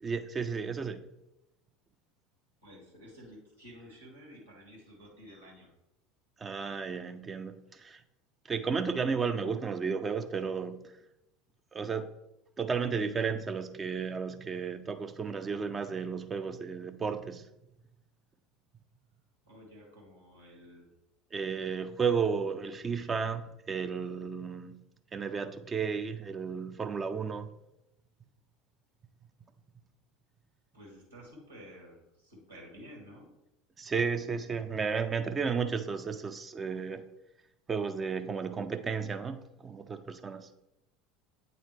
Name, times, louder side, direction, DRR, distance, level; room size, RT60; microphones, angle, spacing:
voice 1, 0.0-1.0 6.4-8.0 8.5-10.8 11.7-12.1 12.6-17.4 21.3-24.8 25.1-27.5 33.8-37.0 37.7-40.5, right 5 dB, 25° right, 0.4 m, -33 dB
voice 2, 2.6-5.7 19.5-20.9 30.7-33.3, equal, 85° right, 1.8 m, -52 dB
8.5 x 3.9 x 3.2 m
figure-of-eight pair, 70°, 0 cm